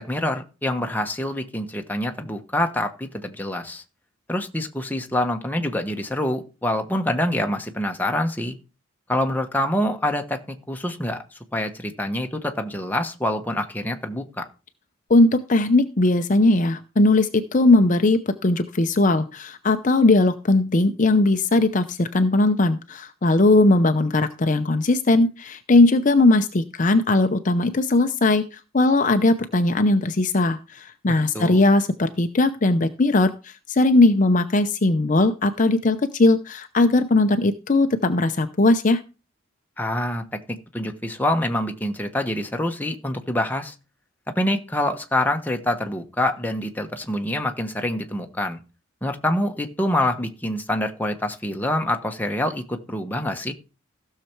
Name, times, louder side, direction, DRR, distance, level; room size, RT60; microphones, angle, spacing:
voice 1, 0.0-3.8 4.3-8.5 9.1-10.4 10.7-11.2 11.5-14.5 31.1-31.6 39.8-40.2 40.7-43.7 44.4-48.6 49.0-53.5, left 1 dB, 10° left, 4 dB, 1.1 m, -26 dB
voice 2, 15.1-39.0, left 2 dB, 40° left, 8 dB, 0.6 m, -19 dB
15.5 x 6.7 x 4.5 m, 0.33 s
head